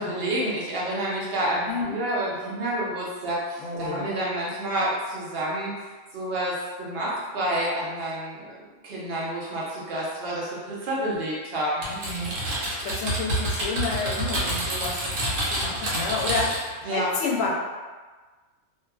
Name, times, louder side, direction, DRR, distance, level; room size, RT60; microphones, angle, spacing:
voice 1, 0.0-5.7 6.1-11.8 16.9-17.1, right 1 dB, 55° right, -5 dB, 0.9 m, -29 dB
voice 2, 1.7-2.0 3.6-4.1 11.9-12.4 12.8-17.5, left 3 dB, 85° left, -3 dB, 1.0 m, -30 dB
Typing, 11.8-16.7, right 1 dB, 75° right, 1.1 m, -28 dB
2.7 x 2.2 x 2.3 m, 1.3 s
omnidirectional pair, 1.3 m